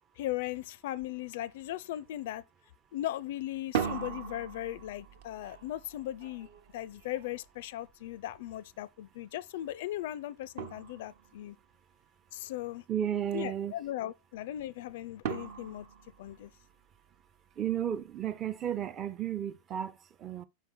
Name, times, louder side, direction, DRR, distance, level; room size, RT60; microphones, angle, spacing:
voice 1, 0.2-2.4 2.9-6.5 6.7-11.6 12.3-12.8 13.3-15.9 16.2-16.5, left 14 dB, 55° left, 0.4 m, -38 dB
sound 1, 1.0-1.2 1.5-2.1 3.5-8.4 10.0-10.1 10.6-11.5 15.2-17.0, right 7 dB, 50° right, 0.8 m, -40 dB
voice 2, 12.9-13.7 17.6-20.4, right 10 dB, 25° right, 0.5 m, -33 dB
5.7 x 5.1 x 5.9 m
figure-of-eight pair, 90°, 0 cm